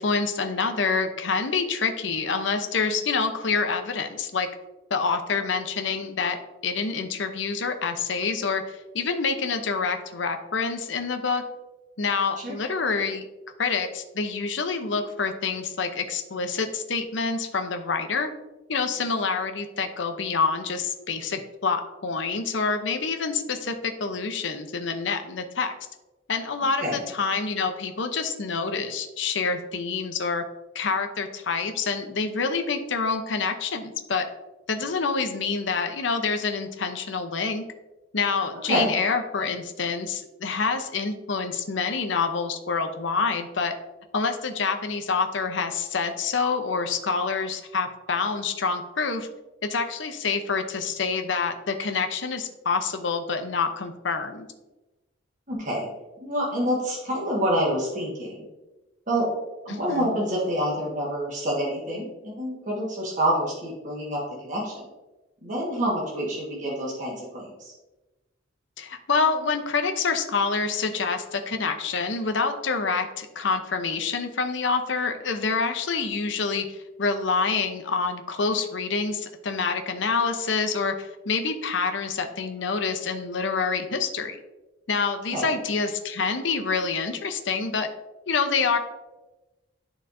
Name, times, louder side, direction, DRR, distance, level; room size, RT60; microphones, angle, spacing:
voice 1, 0.0-4.5 4.9-8.6 8.9-11.4 12.0-13.2 13.6-18.3 18.7-23.7 24.0-25.7 26.3-30.4 30.7-34.2 34.7-37.6 38.1-43.7 44.1-49.3 49.7-54.5 59.7-60.1 68.8-76.7 77.0-84.4 84.9-87.9 88.3-88.8, left 4 dB, 65° left, 7 dB, 0.7 m, -27 dB
voice 2, 55.5-55.9 56.2-58.4 59.1-59.3 59.6-64.7 65.4-67.7 85.3-85.5, equal, 40° right, -5 dB, 1.5 m, -27 dB
11.5 x 4.0 x 2.6 m, 1.1 s
head